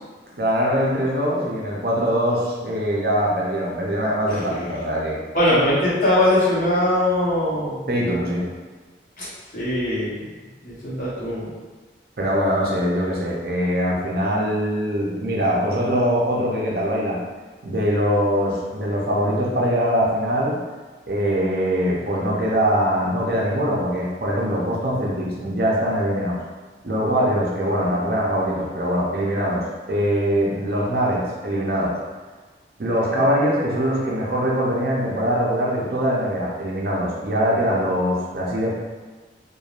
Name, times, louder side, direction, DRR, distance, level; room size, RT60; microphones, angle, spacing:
voice 1, 0.3-5.2 7.9-8.4 12.2-17.2 17.6-20.6 21.1-26.4 26.8-29.6 29.9-32.0 32.8-38.7, equal, 55° right, -4 dB, 0.5 m, -22 dB
voice 2, 5.3-7.8 9.2-9.3 9.5-10.2 10.6-11.5, left 1 dB, 50° left, -8 dB, 0.9 m, -21 dB
3.0 x 2.2 x 2.4 m, 1.3 s
head